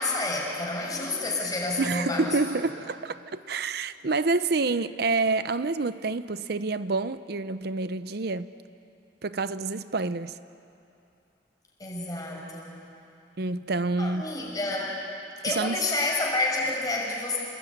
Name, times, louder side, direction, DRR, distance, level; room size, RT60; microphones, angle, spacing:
voice 1, 0.0-2.3 11.8-12.8 14.0-15.0 15.4-17.4, left 2 dB, 20° left, 5.9 m, -29 dB
voice 2, 1.8-8.5 9.2-10.3 13.4-14.2 15.5-15.8, right 3 dB, 60° right, 0.7 m, -28 dB
28.0 x 20.5 x 9.3 m
head